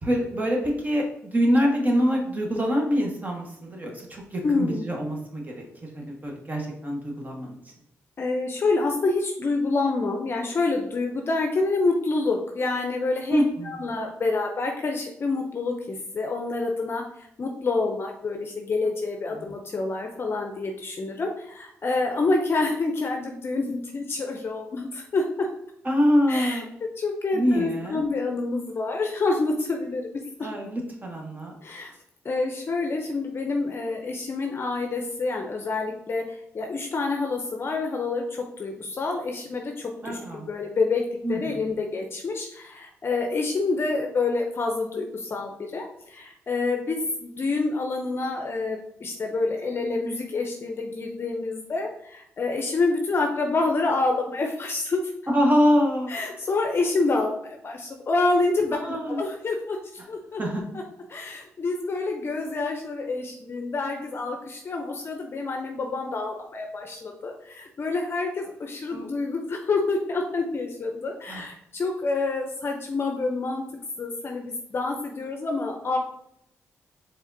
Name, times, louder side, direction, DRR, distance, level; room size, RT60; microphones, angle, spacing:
voice 1, 0.0-7.6 13.3-13.7 19.3-19.5 25.8-26.7 27.3-28.0 30.4-31.5 40.0-40.5 41.2-41.6 55.3-56.1 58.7-59.2 60.0-60.1 60.4-60.6 68.9-69.1 71.3-71.4, equal, 30° right, 0 dB, 1.3 m, -25 dB
voice 2, 4.4-4.9 8.2-17.0 17.4-25.5 26.3-30.0 30.4-30.5 31.6-31.9 32.2-38.2 38.6-41.0 41.3-55.0 56.1-59.8 60.1-60.4 61.1-73.6 74.0-76.0, left 3 dB, 45° left, 3 dB, 0.6 m, -27 dB
4.8 x 3.6 x 2.7 m, 0.76 s
cardioid pair, 65°, 6 cm